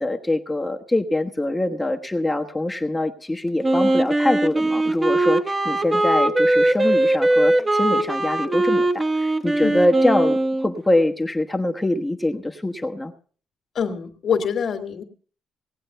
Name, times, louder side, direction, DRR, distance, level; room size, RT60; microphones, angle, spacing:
voice 1, 0.0-13.1, left 1 dB, 15° left, 4 dB, 1.2 m, -24 dB
Wind instrument woodwind instrument, 3.6-10.7, right 1 dB, 20° right, 1.2 m, -20 dB
voice 2, 13.8-15.0, left 7 dB, 55° left, 6 dB, 2.1 m, -25 dB
18.5 x 8.5 x 5.6 m, 0.43 s
cardioid pair, 90°, 0 cm